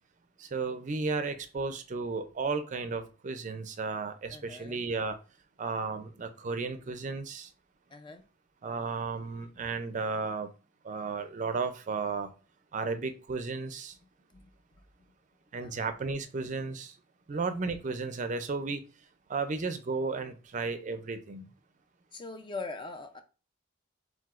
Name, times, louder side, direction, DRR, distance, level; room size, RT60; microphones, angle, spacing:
voice 1, 0.4-5.2 5.6-7.5 8.6-10.5 10.8-12.3 12.7-14.0 15.5-16.9 17.3-18.8 19.3-21.5, right 4 dB, 40° right, 0.4 m, -34 dB
voice 2, 4.3-4.8 7.9-8.2 14.3-14.5 15.6-15.9 17.3-17.5 22.1-23.2, left 3 dB, 25° left, 0.4 m, -42 dB
4.7 x 3.8 x 2.4 m
head